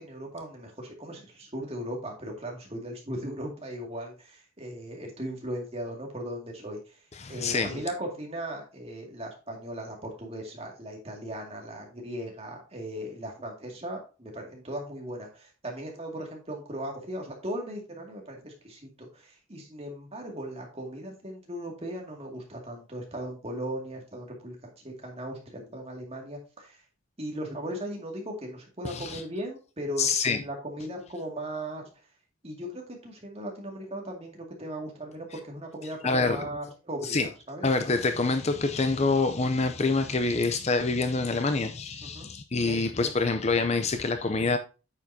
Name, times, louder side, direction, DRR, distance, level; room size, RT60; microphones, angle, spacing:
voice 1, 0.0-7.0 7.3-26.8 27.2-30.1 30.4-31.9 32.4-37.7 42.0-42.3 42.5-42.8, right 1 dB, 30° right, 2.2 m, -38 dB
voice 2, 7.2-7.8 28.8-29.2 30.0-30.4 36.0-36.5 37.0-37.3 37.6-44.6, left 3 dB, 30° left, 0.5 m, -26 dB
8.9 x 7.1 x 2.7 m
head